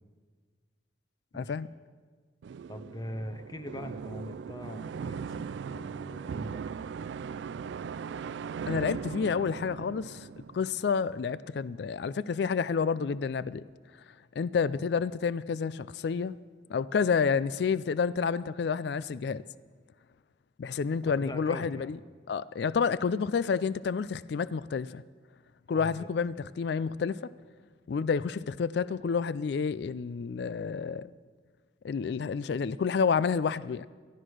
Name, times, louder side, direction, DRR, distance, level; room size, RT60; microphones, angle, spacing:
voice 1, 1.3-1.7 8.7-10.3 10.5-13.6 14.4-16.3 16.7-19.4 20.6-22.0 22.3-25.0 25.7-27.3 27.9-31.1 31.8-33.9, left 5 dB, 60° left, 0.3 m, -29 dB
sound 1, 2.4-11.2, right 6 dB, 70° right, 0.3 m, -39 dB
voice 2, 2.7-5.3 5.7-6.9 14.7-14.9 21.0-21.9 25.7-26.1, equal, 20° left, 0.7 m, -42 dB
12.5 x 12.0 x 6.2 m
head